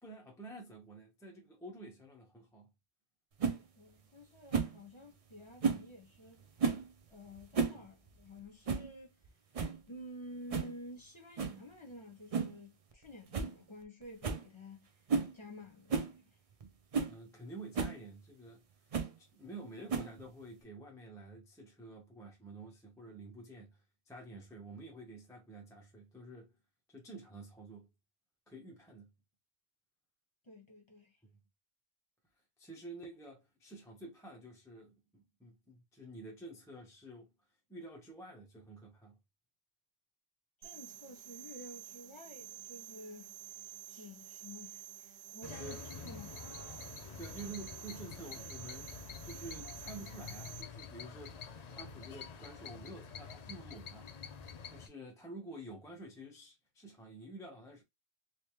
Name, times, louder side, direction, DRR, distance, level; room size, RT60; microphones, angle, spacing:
voice 1, 0.0-2.7 7.7-7.9 17.0-18.6 19.2-23.8 24.1-26.5 26.9-27.9 28.5-29.1 32.6-37.3 37.7-39.2 45.5-46.1 47.2-48.9 49.2-54.1 54.7-57.8, right 2 dB, 5° left, 0.5 m, -50 dB
sound 1, 3.4-3.6 4.5-4.8 5.6-5.9 6.6-6.9 7.4-7.8 8.1-8.2 8.7-8.9 9.2-9.3 9.5-9.8 10.5-10.7 11.4-11.6 12.3-12.6 12.9-13.0 13.3-13.5 13.8-13.9 14.2-14.5 15.1-15.3 15.9-16.1 16.6-16.7 16.9-17.1 17.7-18.0 18.9-19.1 19.9-20.3, right 5 dB, 50° right, 0.4 m, -33 dB
voice 2, 3.8-6.4 7.1-9.2 9.9-14.9 15.3-16.3 30.4-31.2 40.6-43.4 43.9-46.3, left 1 dB, 25° left, 1.1 m, -51 dB
sound 2, 40.6-50.6, right 12 dB, 90° right, 1.0 m, -50 dB
sound 3, 45.4-54.9, left 6 dB, 60° left, 0.4 m, -47 dB
3.3 x 3.0 x 2.9 m
omnidirectional pair, 1.3 m